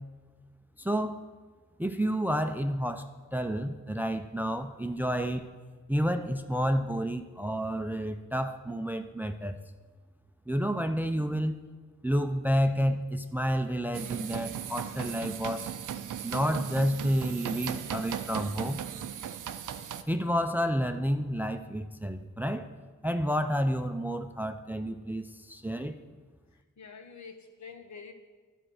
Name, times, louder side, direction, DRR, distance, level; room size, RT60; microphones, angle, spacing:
voice 1, 0.8-1.2 1.8-5.5 5.9-9.6 10.5-11.6 12.0-15.7 16.2-18.8 20.1-22.7 23.0-25.9, equal, 5° right, 8 dB, 0.5 m, -30 dB
sound 1, 13.9-20.0, right 9 dB, 85° right, 0.5 m, -37 dB
voice 2, 26.5-28.1, left 5 dB, 65° left, 4 dB, 1.1 m, -47 dB
11.5 x 4.4 x 6.3 m, 1.4 s
cardioid pair, 60°, 31 cm